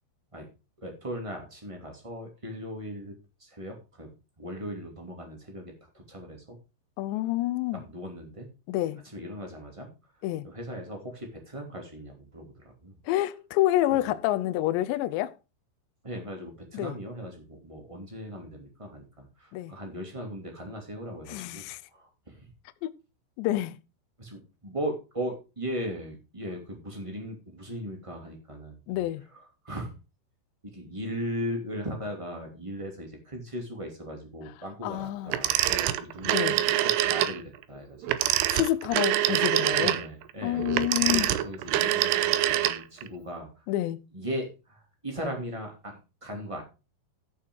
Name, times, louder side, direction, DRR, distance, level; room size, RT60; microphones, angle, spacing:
voice 1, 0.8-3.1 3.4-4.1 4.4-5.6 5.9-6.6 7.7-8.5 9.1-9.9 10.4-12.9 13.9-14.1 16.0-21.6 21.9-22.5 24.2-29.0 29.3-29.4 29.6-29.9 30.7-38.6 39.3-39.4 39.8-43.5 44.1-46.6, equal, 15° right, 1.1 m, -38 dB
voice 2, 7.0-7.8 8.7-9.0 10.2-10.5 13.1-15.3 16.7-17.0 19.5-19.7 21.3-21.8 22.8-22.9 23.4-23.8 28.9-29.2 34.8-35.4 36.2-36.6 38.5-40.0 40.4-41.3 43.7-44.0, left 15 dB, 80° left, 2.7 m, -28 dB
Telephone, 35.3-37.4 38.0-43.1, right 13 dB, 85° right, 2.4 m, -25 dB
14.0 x 6.0 x 4.7 m
omnidirectional pair, 5.6 m